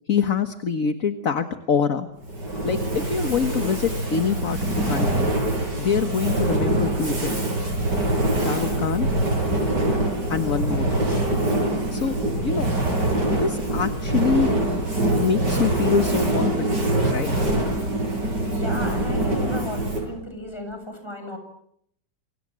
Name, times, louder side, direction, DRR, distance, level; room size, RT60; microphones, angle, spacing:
voice 1, 0.1-2.1 2.6-5.3 5.8-7.5 8.4-9.1 10.3-10.9 11.9-12.7 13.3-14.5 15.2-16.8 17.1-17.3, left 6 dB, 55° left, 8 dB, 1.8 m, -25 dB
Fire, 2.2-20.2, right 1 dB, 75° right, 8.5 m, -24 dB
voice 2, 18.5-21.4, equal, 15° left, 5 dB, 7.2 m, -35 dB
28.5 x 25.0 x 7.6 m, 0.72 s
omnidirectional pair, 1.8 m